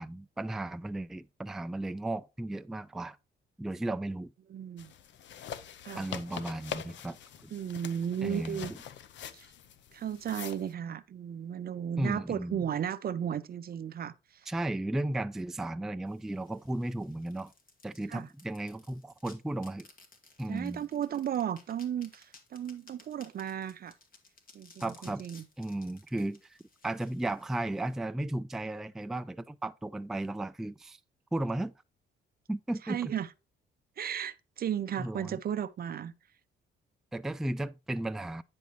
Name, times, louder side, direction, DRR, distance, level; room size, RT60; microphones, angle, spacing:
voice 1, 0.0-3.2 3.6-4.3 6.0-7.2 7.4-7.5 8.2-8.7 12.0-12.7 14.5-17.5 17.8-19.9 20.4-20.8 24.8-25.3 25.6-26.6 26.8-31.0 31.3-31.7 32.5-33.1 35.0-35.4 37.1-38.4, right 1 dB, ahead, 0.3 m, -35 dB
voice 2, 4.5-4.9 5.8-6.1 7.5-8.7 9.3-9.5 9.9-14.5 18.1-18.3 20.5-23.9 24.5-25.4 32.8-33.3 34.0-36.1, right 9 dB, 50° right, 0.6 m, -35 dB
sound 1, 4.8-10.7, left 9 dB, 65° left, 0.7 m, -44 dB
sound 2, 16.1-28.0, left 3 dB, 45° left, 1.9 m, -59 dB
9.4 x 5.4 x 3.0 m
cardioid pair, 90°, 20 cm